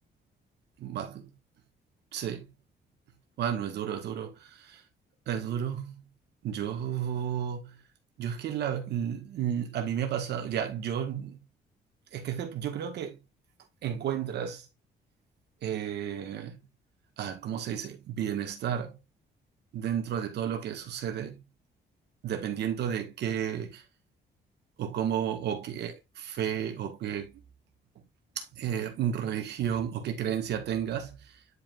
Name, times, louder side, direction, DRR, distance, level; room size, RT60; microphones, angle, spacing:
voice 1, 0.8-1.3 2.1-2.5 3.4-4.8 5.3-6.0 6.4-7.8 8.2-11.4 12.1-13.2 13.8-14.7 15.6-16.6 17.2-19.0 19.7-21.4 22.2-23.8 24.8-27.3 28.3-31.4, right 9 dB, 70° right, 1.7 m, -32 dB
10.0 x 5.3 x 2.5 m
cardioid pair, 155°, 18 cm